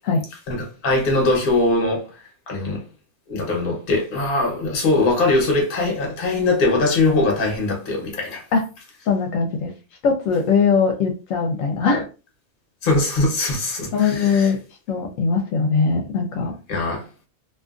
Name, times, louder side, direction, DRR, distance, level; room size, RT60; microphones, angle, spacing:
voice 1, 0.5-2.8 3.3-8.4 12.8-14.5 16.7-17.1, left 2 dB, 45° left, 1.0 m, -21 dB
voice 2, 9.1-9.7 10.0-12.1 13.9-14.6 14.9-16.6, left 5 dB, 75° left, 0.9 m, -20 dB
2.7 x 2.4 x 2.4 m
omnidirectional pair, 1.4 m